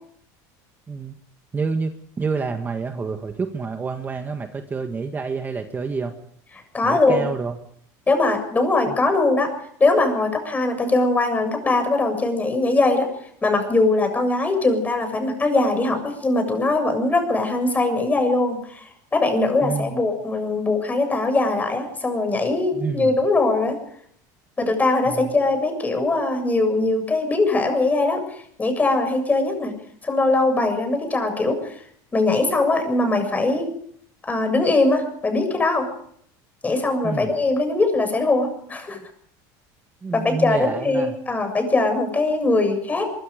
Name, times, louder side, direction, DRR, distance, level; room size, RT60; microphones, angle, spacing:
voice 1, 1.5-1.9 2.2-6.1 6.8-7.5 8.9-9.0 19.6-20.0 22.7-23.1 25.1-25.3 37.0-37.3 40.0-41.1, right 4 dB, 20° right, 5 dB, 1.7 m, -28 dB
voice 2, 6.7-7.3 8.1-9.5 9.8-13.1 13.4-23.8 24.6-29.7 30.0-31.8 32.1-33.7 34.2-35.9 36.6-39.0 40.1-43.1, left 2 dB, 15° left, 6 dB, 7.2 m, -21 dB
23.5 x 23.0 x 5.2 m, 0.66 s
supercardioid pair, 130°, 9 cm